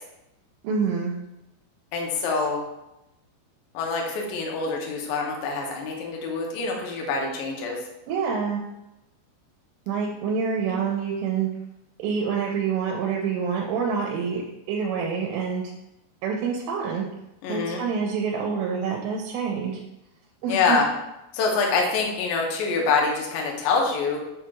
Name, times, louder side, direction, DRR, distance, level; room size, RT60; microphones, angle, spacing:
voice 1, 0.6-1.2 8.1-8.6 9.9-11.5 12.0-14.4 14.7-15.7 16.2-17.0 17.5-19.7 20.4-20.8, right 6 dB, 85° right, -1 dB, 2.7 m, -26 dB
voice 2, 1.9-2.6 3.7-7.8 17.4-17.8 20.5-20.9 21.3-24.2, left 4 dB, 80° left, 0 dB, 2.0 m, -25 dB
7.1 x 2.9 x 2.3 m, 0.90 s
omnidirectional pair, 4.9 m